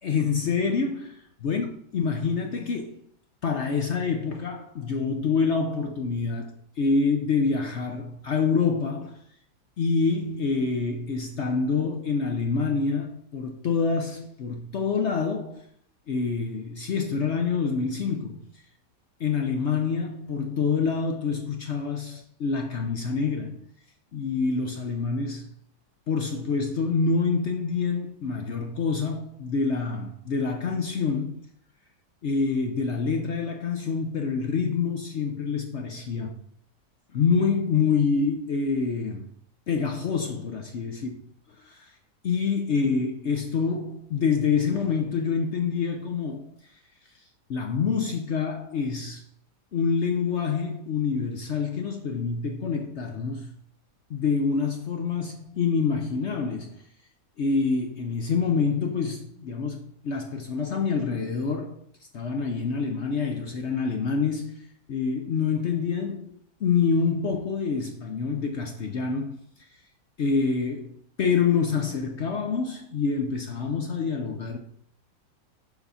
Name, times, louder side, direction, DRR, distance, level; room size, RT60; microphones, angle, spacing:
voice 1, 0.0-3.0 3.4-6.5 6.8-9.2 9.8-15.6 16.1-18.4 19.2-23.6 24.1-25.5 26.1-31.5 32.2-36.4 37.1-39.3 39.7-41.1 41.6-41.9 42.2-46.5 47.5-49.2 49.7-53.5 54.1-56.8 57.4-61.8 62.1-69.4 70.2-74.6, left 5 dB, 65° left, 0.7 m, -26 dB
6.9 x 4.1 x 5.6 m
omnidirectional pair, 1.9 m